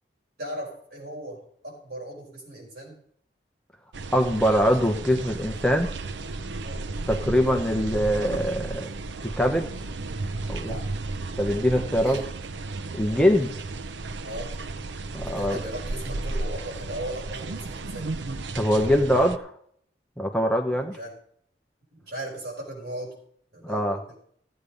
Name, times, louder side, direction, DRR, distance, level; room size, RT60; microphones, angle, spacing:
voice 1, 0.4-3.0 6.6-6.8 10.6-10.9 11.9-12.3 14.2-14.5 15.2-18.1 20.7-21.1 21.9-23.1 23.5-24.1, right 1 dB, 65° right, -2 dB, 5.7 m, -37 dB
sound 1, 3.9-19.4, right 3 dB, 90° right, 0.6 m, -34 dB
voice 2, 4.1-5.9 7.1-8.9 9.2-9.7 10.5-10.8 11.4-12.2 12.9-13.5 15.1-15.6 18.6-19.5 20.2-21.0 23.6-24.0, equal, 5° left, 3 dB, 0.9 m, -23 dB
15.0 x 8.5 x 5.2 m, 0.63 s
head